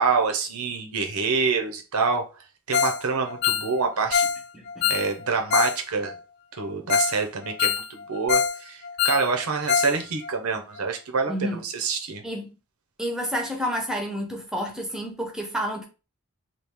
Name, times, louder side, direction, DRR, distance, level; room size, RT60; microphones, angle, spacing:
voice 1, 0.0-2.2 2.7-4.3 4.9-6.1 6.5-11.3 11.6-12.2, right 4 dB, 80° right, 0.8 m, -26 dB
Ringtone, 2.7-3.0 3.3-5.8 6.1-6.2 6.6-6.7 6.9-7.2 7.4-8.6 8.8-10.0 10.2-10.3 10.8-10.9, left 7 dB, 50° left, 0.3 m, -24 dB
voice 2, 4.5-4.9 11.3-11.6 12.2-12.5 13.0-15.9, equal, 5° right, 0.7 m, -29 dB
3.1 x 2.4 x 3.5 m
head